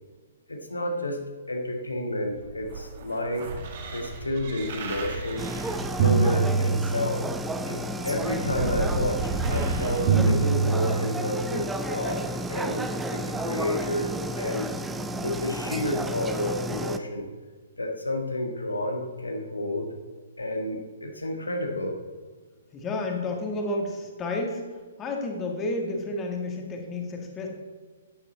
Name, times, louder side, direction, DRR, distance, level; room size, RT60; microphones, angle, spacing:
voice 1, 0.5-1.2 1.5-3.5 3.8-5.5 6.0-7.3 7.6-14.7 15.2-17.3 17.8-19.9 20.4-21.9, left 1 dB, 75° left, 3 dB, 1.7 m, -30 dB
sound 1, 2.4-7.3 8.0-11.3 12.1-12.2, right 5 dB, 40° right, 2.1 m, -27 dB
sound 2, 5.4-17.0, right 1 dB, 5° right, 0.6 m, -32 dB
voice 2, 22.7-24.6 25.0-27.5, left 2 dB, 20° left, 2 dB, 1.9 m, -31 dB
13.5 x 9.7 x 4.1 m, 1.4 s
figure-of-eight pair, 120°, 0 cm